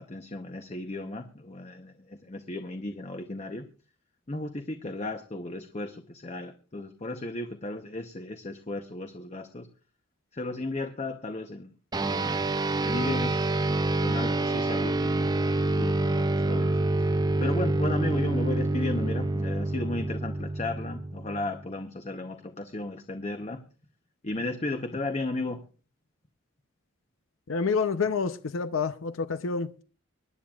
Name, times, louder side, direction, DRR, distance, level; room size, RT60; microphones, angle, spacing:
voice 1, 0.0-3.6 4.3-9.7 10.3-11.7 12.0-12.5 12.8-13.5 13.9-15.3 15.7-17.1 17.4-23.6 24.2-25.6, left 2 dB, 30° left, 0.8 m, -35 dB
sound 1, 11.9-21.7, right 2 dB, 20° right, 0.6 m, -27 dB
voice 2, 27.5-29.8, left 5 dB, 85° left, 0.7 m, -28 dB
25.0 x 10.5 x 2.4 m
head